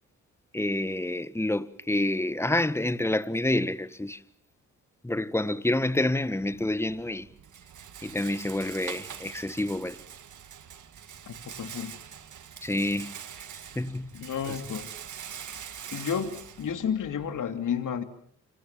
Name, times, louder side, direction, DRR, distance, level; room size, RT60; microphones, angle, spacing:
voice 1, 0.5-4.2 5.0-7.3 8.0-10.0 12.6-13.2 13.7-14.1, left 1 dB, 10° left, 1.7 m, -28 dB
Rattle, 6.4-17.4, right 8 dB, 65° right, 1.9 m, -44 dB
voice 2, 11.3-12.0 14.1-15.0 15.9-18.0, left 7 dB, 65° left, 3.1 m, -31 dB
29.0 x 26.0 x 7.5 m
supercardioid pair, 60°, 33 cm